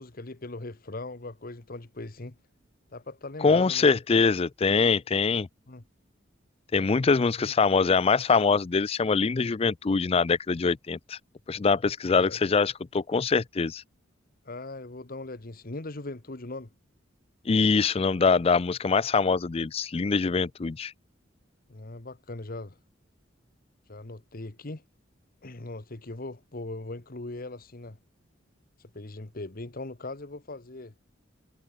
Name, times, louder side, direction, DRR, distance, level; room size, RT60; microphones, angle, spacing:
voice 1, 0.0-2.4 2.9-3.8 5.7-5.8 7.4-7.5 12.2-12.4 14.4-16.7 21.7-22.8 23.9-24.8 25.4-28.0 28.8-30.9, left 2 dB, 50° left, 1.3 m, -39 dB
voice 2, 3.4-5.5 6.7-11.2 11.5-13.8 17.5-20.9, left 4 dB, 30° left, 0.4 m, -23 dB
head